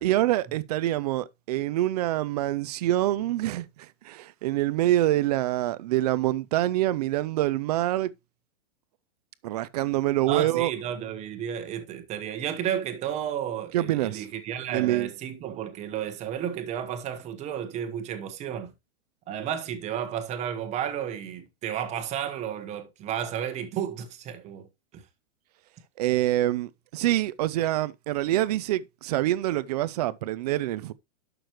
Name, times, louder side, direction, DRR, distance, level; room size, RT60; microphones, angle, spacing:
voice 1, 0.0-8.1 9.4-10.7 13.7-14.3 14.7-15.1 26.0-30.9, right 15 dB, 35° right, 0.5 m, -26 dB
voice 2, 10.3-18.7 19.3-24.7 24.9-25.0, right 9 dB, 20° right, 1.1 m, -32 dB
11.5 x 6.2 x 3.0 m
supercardioid pair, 165°, 35 cm